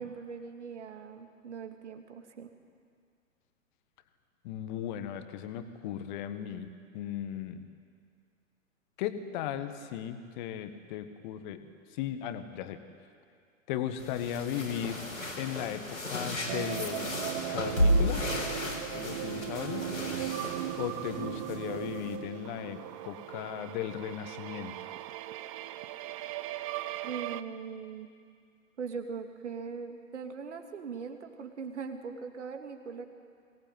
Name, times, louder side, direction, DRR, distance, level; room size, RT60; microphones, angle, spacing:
voice 1, 0.0-2.5 27.0-28.1 28.8-33.1, right 5 dB, 60° right, 5 dB, 2.5 m, -40 dB
voice 2, 4.4-7.7 9.0-12.8 13.7-15.1 15.4-17.2 17.5-18.4 18.9-19.9 20.8-24.7, left 10 dB, 35° left, 10 dB, 1.7 m, -37 dB
sound 1, 14.0-22.2, equal, 85° left, 4.3 m, -33 dB
sound 2, 16.5-27.4, right 14 dB, 25° right, 0.6 m, -38 dB
23.0 x 18.5 x 9.3 m, 2.2 s
figure-of-eight pair, 110°, 40 cm